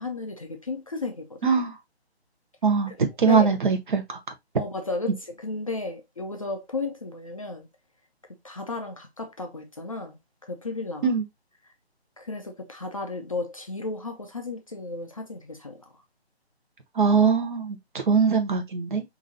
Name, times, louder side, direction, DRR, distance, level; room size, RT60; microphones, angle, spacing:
voice 1, 0.0-1.5 2.9-3.5 4.6-7.7 8.4-11.1 11.6-11.7 12.2-15.9, left 3 dB, 35° left, 0.5 m, -34 dB
voice 2, 1.4-1.7 2.6-4.2 11.0-11.2 16.9-19.0, right 5 dB, 50° right, 1.0 m, -22 dB
5.0 x 2.7 x 2.5 m
figure-of-eight pair, 150°, 33 cm